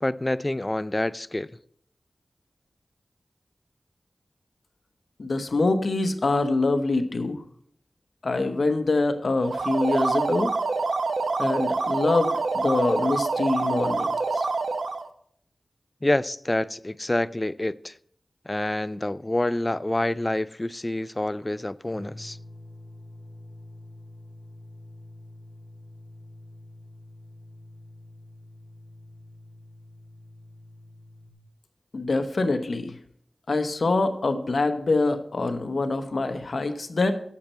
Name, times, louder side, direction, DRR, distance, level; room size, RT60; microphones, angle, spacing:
voice 1, 0.0-1.5 16.0-17.9 18.5-22.4, left 1 dB, 25° left, 0.3 m, -27 dB
voice 2, 5.2-7.4 8.2-10.5 11.4-14.5 31.9-33.0 33.5-37.1, left 3 dB, 70° left, 0.9 m, -25 dB
sound 1, 9.4-15.1, right 3 dB, 85° right, 0.6 m, -26 dB
sound 2, 21.9-31.3, left 1 dB, 5° right, 1.9 m, -46 dB
8.5 x 7.2 x 4.3 m
wide cardioid pair, 60°, 0 cm